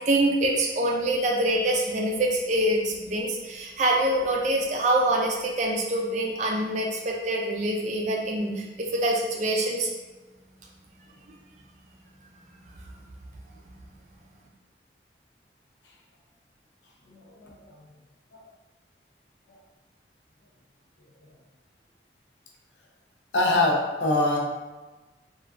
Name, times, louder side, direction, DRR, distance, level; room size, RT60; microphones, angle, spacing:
voice 1, 0.1-9.9, right 1 dB, 40° right, -1 dB, 0.4 m, -25 dB
voice 2, 17.0-17.8 18.3-18.5 23.3-24.5, left 2 dB, 80° left, 0 dB, 0.5 m, -24 dB
3.2 x 2.3 x 2.4 m, 1.2 s
head